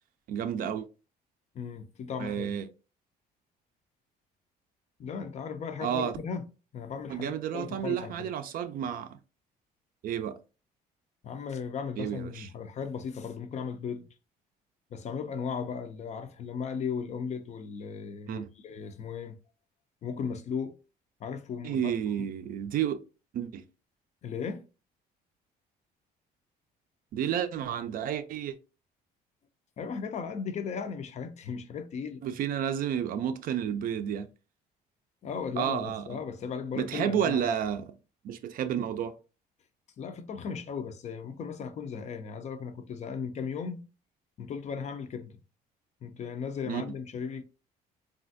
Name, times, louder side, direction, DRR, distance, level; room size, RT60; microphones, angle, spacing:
voice 1, 0.3-0.9 2.2-2.7 5.8-6.2 7.1-9.2 10.0-10.4 12.0-12.5 18.3-18.5 21.6-23.0 23.3-23.6 27.1-28.6 32.2-34.3 35.6-36.2 36.8-37.9 38.2-39.2 46.7-46.8, right 9 dB, 55° right, 0.4 m, -31 dB
voice 2, 1.5-2.6 5.0-8.3 11.2-14.1 14.9-19.4 20.0-20.7 21.2-21.9 24.2-24.6 29.8-32.2 35.2-37.4 40.0-43.9 44.4-45.4 46.0-47.4, left 6 dB, 40° left, 0.4 m, -36 dB
3.3 x 2.4 x 2.5 m
cardioid pair, 110°, 17 cm